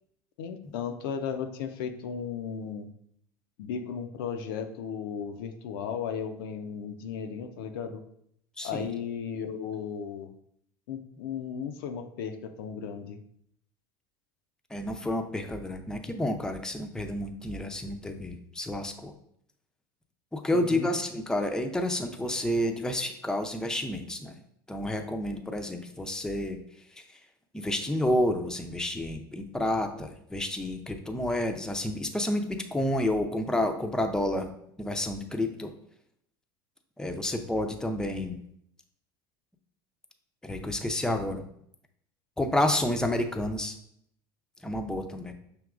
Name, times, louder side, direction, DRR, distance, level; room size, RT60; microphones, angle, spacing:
voice 1, 0.4-2.9 3.6-8.0 8.6-10.3 10.9-13.2 20.5-20.9, left 7 dB, 75° left, 6 dB, 0.5 m, -35 dB
voice 2, 8.6-8.9 14.7-19.1 20.3-24.4 24.7-26.6 27.5-34.5 34.8-35.7 37.0-38.4 40.4-41.4 42.4-43.8 44.6-45.3, left 1 dB, 5° left, 5 dB, 0.5 m, -30 dB
6.0 x 2.9 x 2.4 m, 0.70 s
hypercardioid pair, 85°, 12 cm